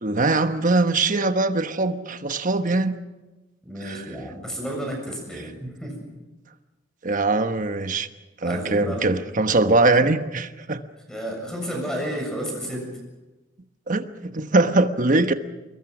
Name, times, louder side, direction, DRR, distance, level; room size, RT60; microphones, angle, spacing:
voice 1, 0.0-3.0 3.8-4.0 7.0-8.1 8.4-10.8 13.9-15.3, right 2 dB, 45° right, 9 dB, 1.2 m, -22 dB
voice 2, 3.6-6.1 8.4-9.1 11.1-12.9, equal, 5° left, 1 dB, 7.5 m, -31 dB
25.5 x 22.0 x 6.2 m, 1.1 s
head